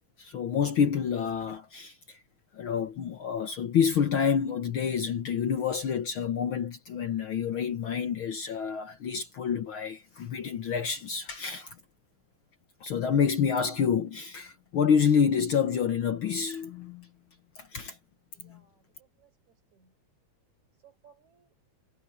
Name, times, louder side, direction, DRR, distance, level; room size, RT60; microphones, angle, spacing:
voice 1, 0.2-2.2 2.5-11.7 12.8-17.1 17.6-18.0 18.4-18.6, left 7 dB, 60° left, 1.5 m, -28 dB
voice 2, 18.3-20.0 20.8-21.6, right 7 dB, 75° right, 6.1 m, -62 dB
omnidirectional pair, 3.3 m